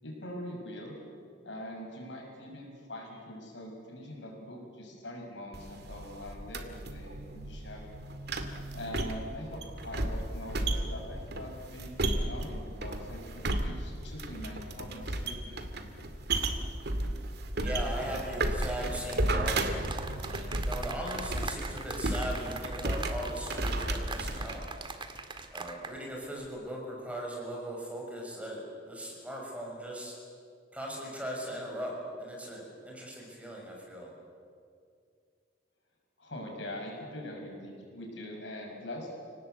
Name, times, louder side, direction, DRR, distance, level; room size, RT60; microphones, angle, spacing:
voice 1, 0.0-0.9 1.4-7.9 8.7-12.0 12.2-15.7 36.2-39.1, left 1 dB, 75° left, 2 dB, 6.3 m, -43 dB
sound 1, 5.5-24.6, right 1 dB, 60° right, 2.2 m, -34 dB
voice 2, 17.6-19.8 20.2-24.7 25.5-30.1 30.7-34.1, equal, 10° right, -2 dB, 6.6 m, -39 dB
sound 2, 18.6-26.0 26.2-26.5, right 4 dB, 25° right, 1.8 m, -42 dB
29.5 x 19.0 x 8.2 m, 2.3 s
head